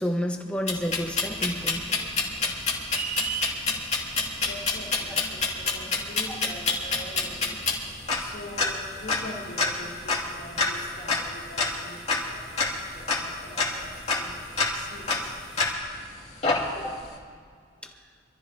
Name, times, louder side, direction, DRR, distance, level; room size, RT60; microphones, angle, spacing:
voice 1, 0.0-2.4 14.1-14.2 16.7-17.0 17.8-17.9, equal, 5° left, 2 dB, 1.2 m, -31 dB
sound 1, 0.7-16.0 16.4-17.0, left 3 dB, 35° left, 2.5 m, -28 dB
sound 2, 2.9-3.6, right 8 dB, 45° right, 0.7 m, -32 dB
voice 2, 4.4-15.4, left 1 dB, 50° left, -6 dB, 3.2 m, -43 dB
26.5 x 14.0 x 2.9 m, 2.1 s
head